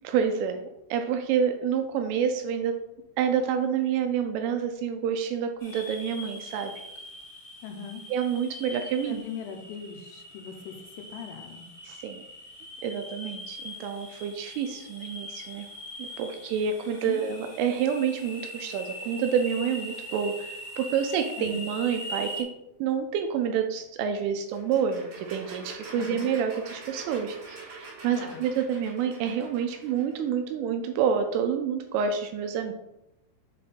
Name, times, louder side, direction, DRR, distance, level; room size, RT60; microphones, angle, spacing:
voice 1, 0.0-2.7 3.2-6.7 8.1-9.2 11.9-12.2 12.8-15.7 16.0-22.5 22.8-32.7, right 7 dB, 85° right, 5 dB, 3.0 m, -28 dB
sound 1, 5.6-22.4, left 1 dB, 35° left, 0.8 m, -42 dB
voice 2, 7.6-8.0 9.0-10.8 11.1-11.7 17.1-17.3 21.4-21.7 26.0-26.3 28.1-28.5, left 7 dB, 85° left, 5 dB, 3.2 m, -40 dB
sound 2, 24.5-30.2, right 4 dB, 60° right, 1.8 m, -44 dB
7.5 x 4.1 x 3.6 m, 0.86 s
omnidirectional pair, 5.8 m